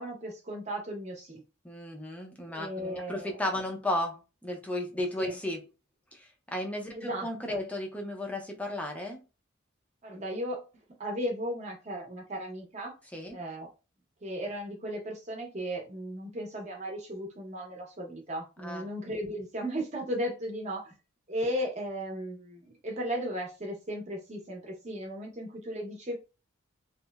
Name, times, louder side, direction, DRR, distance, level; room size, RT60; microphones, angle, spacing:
voice 1, 0.0-1.4 2.5-3.4 5.2-5.4 6.9-7.7 10.0-10.6 11.0-12.9 13.3-13.7 14.2-20.9 21.3-26.2, equal, 35° right, 0.7 m, -36 dB
voice 2, 1.6-5.7 6.1-9.2 13.1-13.4 18.6-18.9, left 1 dB, 5° left, 0.4 m, -34 dB
2.8 x 2.0 x 2.2 m
head